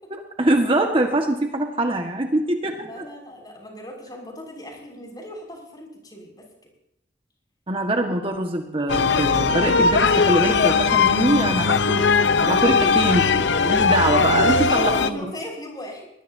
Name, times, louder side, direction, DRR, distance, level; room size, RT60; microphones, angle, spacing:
voice 1, 0.1-2.9 7.7-12.1 12.4-15.2, right 1 dB, 30° right, 3 dB, 1.6 m, -23 dB
voice 2, 2.8-6.7 12.4-13.0 13.5-16.1, equal, 25° left, 0 dB, 6.5 m, -36 dB
sound 1, 8.9-15.1, left 5 dB, 80° left, 0.8 m, -19 dB
21.5 x 20.5 x 2.8 m, 0.83 s
head